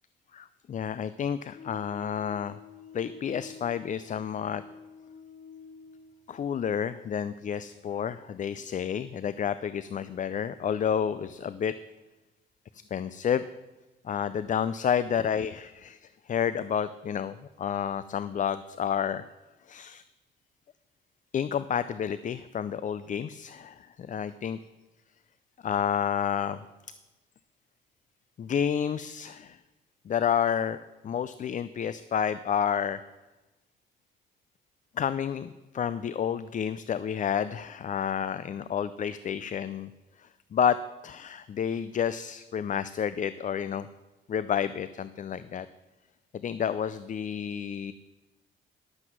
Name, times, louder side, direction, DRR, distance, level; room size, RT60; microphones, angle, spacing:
voice 1, 0.3-2.6 2.9-4.6 6.3-11.8 12.9-13.4 14.0-16.0 16.3-19.2 19.7-20.0 21.3-24.6 25.6-26.6 28.4-29.6 30.1-30.8 31.0-33.0 35.0-39.9 40.2-43.9 44.3-45.7 46.3-47.9, left 8 dB, 40° left, 14 dB, 0.4 m, -30 dB
sound 1, 1.5-8.0, left 5 dB, 75° left, 1.6 m, -49 dB
12.0 x 8.0 x 6.1 m, 1.1 s
cardioid pair, 90°, 20 cm